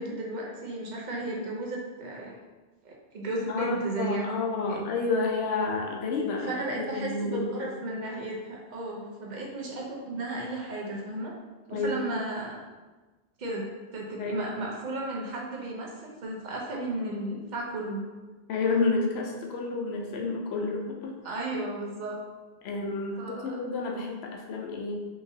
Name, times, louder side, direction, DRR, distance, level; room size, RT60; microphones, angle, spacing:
voice 1, 0.0-2.4 2.8-4.4 4.7-4.8 6.4-11.3 11.7-12.6 13.4-18.0 21.2-22.2 23.2-23.6, right 2 dB, 45° right, -2 dB, 0.7 m, -34 dB
voice 2, 3.5-7.7 11.7-12.0 14.2-14.4 18.5-21.4 22.6-25.0, left 3 dB, 70° left, 1 dB, 0.8 m, -30 dB
3.8 x 2.6 x 2.7 m, 1.2 s
omnidirectional pair, 1.2 m